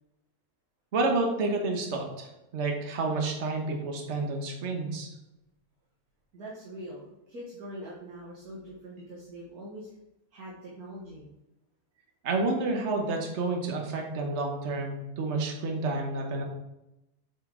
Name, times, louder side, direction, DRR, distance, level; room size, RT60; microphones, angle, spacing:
voice 1, 0.9-5.1 12.2-16.4, right 3 dB, 50° right, 2 dB, 1.4 m, -30 dB
voice 2, 6.3-10.0 10.3-11.3, equal, 85° right, -4 dB, 1.8 m, -43 dB
7.7 x 5.4 x 3.8 m, 0.91 s
omnidirectional pair, 1.6 m